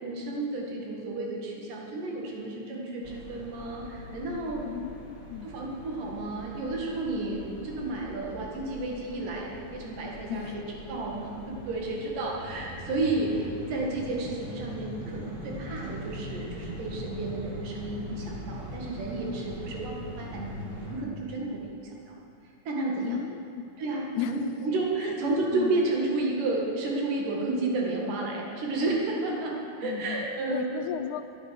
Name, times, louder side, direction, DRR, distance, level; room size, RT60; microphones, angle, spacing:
voice 1, 0.0-4.7 5.4-10.6 10.9-20.6 20.9-22.2 22.7-23.2 23.8-30.9, right 2 dB, 80° right, -2 dB, 3.4 m, -31 dB
sound 1, 3.0-21.0, equal, 30° right, 1.2 m, -42 dB
voice 2, 4.6-5.5 10.3-10.6 23.0-23.6 24.1-24.4 25.0-25.2 25.5-25.9 29.8-31.2, left 11 dB, 80° left, 9 dB, 1.9 m, -35 dB
12.5 x 10.5 x 6.5 m, 2.8 s
omnidirectional pair, 3.7 m